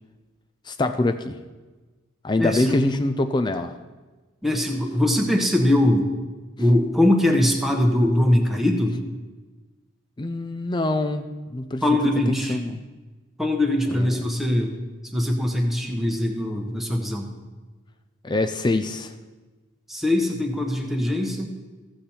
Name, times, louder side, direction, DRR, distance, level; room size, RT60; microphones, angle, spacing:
voice 1, 0.7-1.4 2.2-3.7 10.2-11.2 11.5-11.8 12.3-12.8 13.9-14.2 18.2-19.1, left 2 dB, 20° left, 8 dB, 0.4 m, -24 dB
voice 2, 2.4-2.8 4.4-6.1 6.6-9.0 11.8-12.6 13.4-14.7 15.1-17.3 19.9-21.5, left 1 dB, ahead, 1 dB, 0.9 m, -21 dB
15.0 x 6.8 x 4.3 m, 1.3 s
head